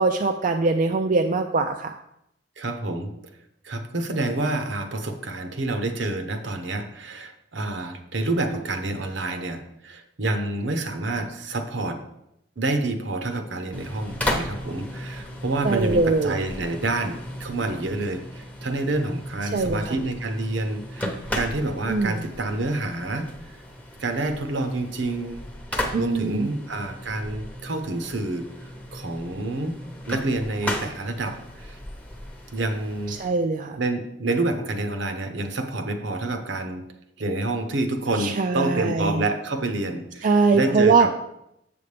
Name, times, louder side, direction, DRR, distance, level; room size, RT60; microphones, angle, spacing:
voice 1, 0.0-1.9 15.6-16.4 19.5-20.0 21.9-22.3 25.9-26.5 33.1-33.8 38.1-39.2 40.2-41.1, right 4 dB, 40° right, 5 dB, 0.3 m, -22 dB
voice 2, 2.6-3.1 3.6-12.0 12.6-23.6 24.0-25.5 25.7-29.7 30.1-31.8 32.5-33.1 33.8-36.8 37.2-41.1, right 2 dB, 70° right, 7 dB, 0.8 m, -28 dB
sound 1, 13.7-33.3, left 1 dB, 5° left, 0.8 m, -35 dB
7.5 x 7.0 x 3.3 m, 0.81 s
head